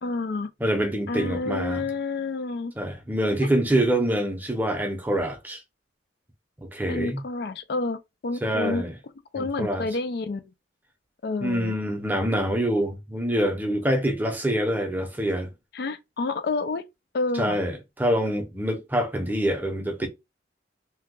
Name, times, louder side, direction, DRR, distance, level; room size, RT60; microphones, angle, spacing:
voice 1, 0.0-0.5 1.1-2.7 6.9-8.0 8.2-8.8 9.3-10.4 11.2-11.7 15.7-16.8 17.1-17.6, left 3 dB, 60° left, 0.4 m, -29 dB
voice 2, 0.6-1.9 2.7-5.6 6.6-7.2 8.4-9.0 9.4-9.9 11.4-15.5 17.3-20.1, right 1 dB, 10° right, 0.7 m, -25 dB
2.8 x 2.2 x 3.6 m
head